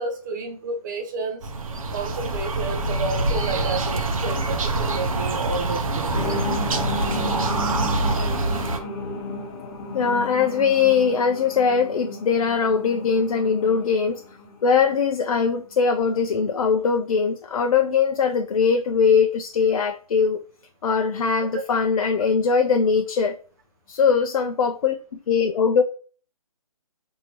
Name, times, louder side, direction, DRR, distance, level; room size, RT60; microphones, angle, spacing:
voice 1, 0.0-1.4 1.9-6.1, right 3 dB, 30° right, 0.7 m, -31 dB
sound 1, 1.4-8.8, right 2 dB, 65° right, 0.7 m, -25 dB
sound 2, 6.1-15.0 15.3-15.4, left 2 dB, 35° left, 0.9 m, -33 dB
voice 2, 9.9-14.2 14.6-20.4 20.8-23.4 23.9-24.9 25.3-25.8, left 6 dB, 70° left, 0.4 m, -21 dB
4.2 x 2.7 x 2.9 m
hypercardioid pair, 150°, 19 cm